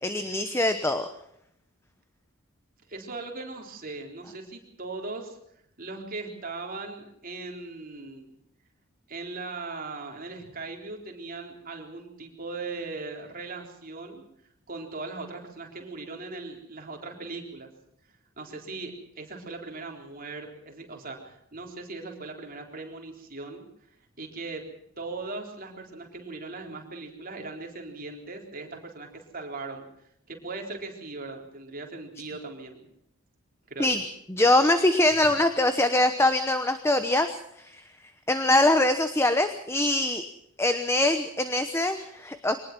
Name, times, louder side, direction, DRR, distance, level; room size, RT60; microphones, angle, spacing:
voice 1, 0.0-1.1 33.8-34.0 34.3-37.3 38.3-40.2 40.6-42.6, left 1 dB, 10° left, 9 dB, 0.9 m, -23 dB
voice 2, 2.9-5.4 5.8-8.3 9.1-14.2 14.7-17.7 18.4-23.7 24.2-24.7 25.0-29.9 30.3-32.9 33.7-34.0, right 3 dB, 40° right, 1 dB, 3.9 m, -39 dB
23.5 x 19.0 x 6.0 m, 0.74 s
head